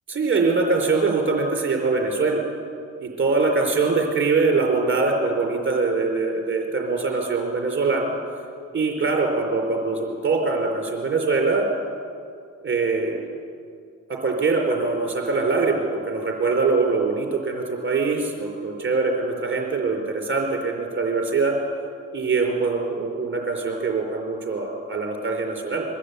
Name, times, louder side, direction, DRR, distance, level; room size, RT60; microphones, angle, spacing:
voice 1, 0.1-2.4 3.0-8.1 8.7-11.7 12.6-13.2 14.1-21.5 22.1-25.8, right 4 dB, 40° right, 2 dB, 4.5 m, -23 dB
23.5 x 15.0 x 8.3 m, 2.4 s
cardioid pair, 90°, 30 cm